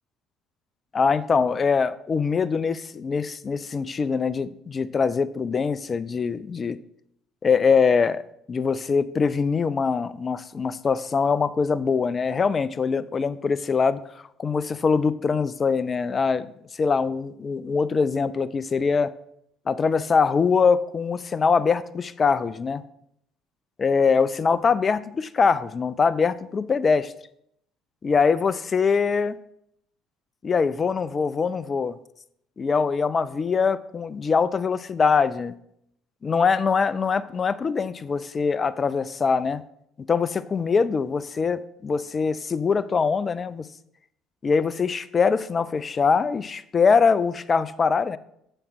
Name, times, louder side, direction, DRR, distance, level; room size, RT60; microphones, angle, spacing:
voice 1, 0.9-6.8 7.4-8.2 8.5-14.0 14.4-16.5 16.8-19.1 19.7-22.8 23.8-27.1 28.0-29.4 30.4-32.0 32.6-35.5 36.2-39.6 40.1-43.6 44.4-48.2, left 5 dB, 35° left, 17 dB, 0.5 m, -23 dB
9.9 x 7.1 x 3.1 m, 0.74 s
hypercardioid pair, 60°, 0 cm